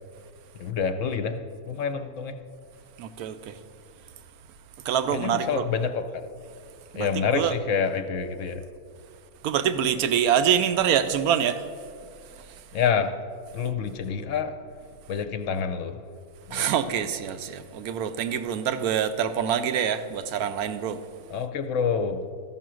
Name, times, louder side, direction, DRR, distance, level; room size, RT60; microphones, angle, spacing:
voice 1, 0.5-2.4 5.1-6.3 6.9-8.6 12.7-13.2 13.5-14.6 15.1-16.0 16.5-16.7 21.3-22.3, left 6 dB, 65° left, 8 dB, 0.9 m, -27 dB
voice 2, 3.0-3.6 4.8-5.7 6.9-7.1 7.3-7.5 9.4-11.7 12.2-12.6 16.5-21.0, right 8 dB, 90° right, 10 dB, 1.1 m, -25 dB
13.0 x 5.8 x 6.2 m, 2.2 s
omnidirectional pair, 1.5 m